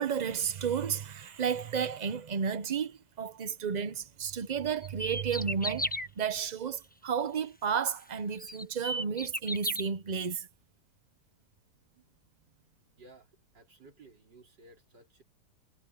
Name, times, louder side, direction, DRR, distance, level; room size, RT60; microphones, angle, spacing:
voice 1, 0.0-10.5, right 7 dB, 60° right, 0.4 m, -32 dB
sound 1, 4.8-6.1 7.8-7.9 8.4-9.8, equal, 5° left, 0.8 m, -34 dB
voice 2, 13.0-15.2, right 2 dB, 85° right, 4.6 m, -56 dB
omnidirectional pair, 1.8 m